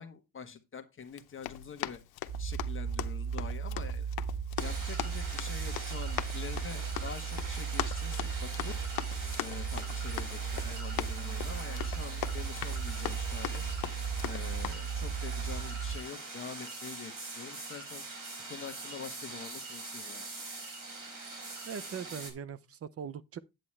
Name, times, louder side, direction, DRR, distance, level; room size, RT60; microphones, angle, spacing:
voice 1, 0.0-2.0 2.4-4.1 4.6-8.8 9.4-13.6 14.2-18.0 18.5-20.2, left 6 dB, 35° left, 1.2 m, -45 dB
Run, 1.1-14.7, left 14 dB, 85° left, 0.8 m, -41 dB
sound 1, 2.3-16.0, right 6 dB, 5° right, 0.9 m, -36 dB
sound 2, 4.6-22.3, right 3 dB, 60° right, 4.3 m, -43 dB
voice 2, 21.6-23.4, right 7 dB, 40° right, 0.7 m, -41 dB
9.1 x 8.6 x 3.3 m
cardioid pair, 135°, 36 cm